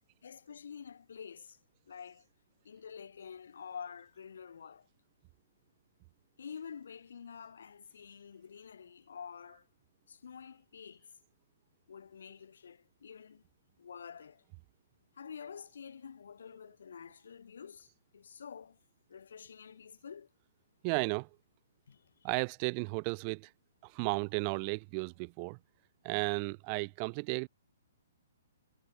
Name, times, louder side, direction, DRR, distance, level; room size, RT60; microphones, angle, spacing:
voice 1, 0.2-1.6 1.9-2.3 2.6-4.9 6.4-9.7 10.1-11.1 11.9-13.4 13.8-14.4 15.1-18.8 19.1-20.3 21.9-22.3, left 7 dB, 75° left, 6.2 m, -48 dB
voice 2, 20.8-21.3 22.2-23.5 23.8-25.6 26.0-27.5, right 38 dB, 30° right, 2.2 m, -34 dB
hypercardioid pair, 150°, 0 cm